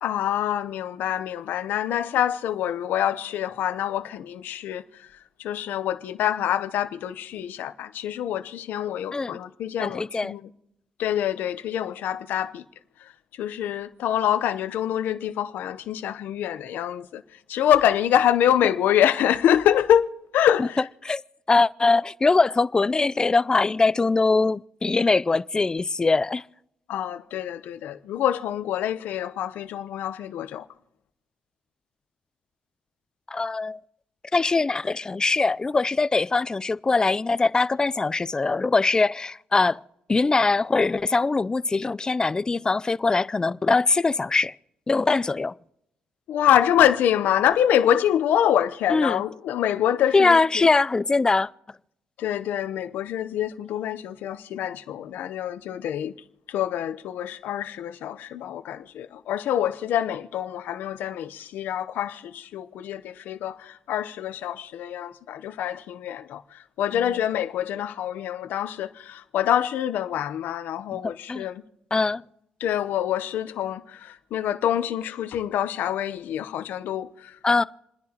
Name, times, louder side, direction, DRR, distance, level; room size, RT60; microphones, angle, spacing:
voice 1, 0.0-5.1 5.4-10.4 11.0-12.6 13.0-13.1 13.4-17.2 17.5-20.1 20.3-20.9 26.9-30.6 46.3-50.4 52.2-56.1 56.5-71.6 72.6-77.4, left 10 dB, 80° left, 0.7 m, -25 dB
voice 2, 9.8-10.3 20.6-20.7 21.0-21.2 21.5-26.4 33.3-33.8 34.3-39.8 40.1-44.5 44.9-45.5 48.9-49.2 50.1-51.5 70.9-71.5 71.9-72.2 77.4-77.6, left 3 dB, 25° left, 0.4 m, -22 dB
29.0 x 10.5 x 2.9 m
cardioid pair, 85°, 3 cm